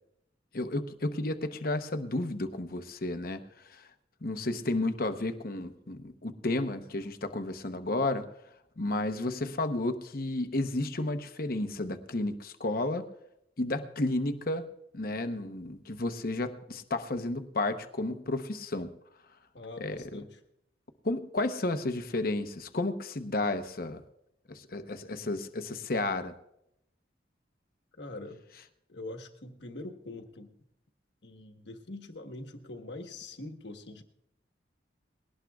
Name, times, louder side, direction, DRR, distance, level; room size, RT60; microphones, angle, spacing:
voice 1, 0.5-3.4 3.7-3.9 4.2-8.2 8.8-13.0 13.6-14.6 14.9-18.9 19.8-20.2 21.0-24.0 24.5-26.3, left 2 dB, 50° left, 9 dB, 0.9 m, -32 dB
voice 2, 19.5-20.4 28.0-28.4 28.9-30.6 31.2-34.0, left 2 dB, 70° left, 6 dB, 1.3 m, -43 dB
20.5 x 17.5 x 2.4 m, 0.79 s
head